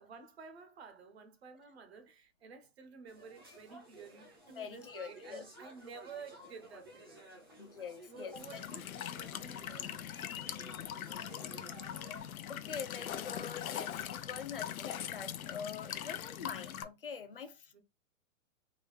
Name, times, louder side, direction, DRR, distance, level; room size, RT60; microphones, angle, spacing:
voice 1, 0.0-7.4 8.1-10.1 10.7-11.7 17.7-17.8, right 5 dB, 50° right, 0.8 m, -52 dB
sound 1, 3.1-12.2, right 1 dB, 20° right, 0.5 m, -55 dB
voice 2, 4.6-5.4 7.6-8.6 12.5-17.8, left 6 dB, 45° left, 0.4 m, -45 dB
Walk footsteps / Chirp tweet / Stream, 8.4-16.8, left 10 dB, 90° left, 0.6 m, -41 dB
3.7 x 2.2 x 3.1 m
hypercardioid pair, 175°, 41 cm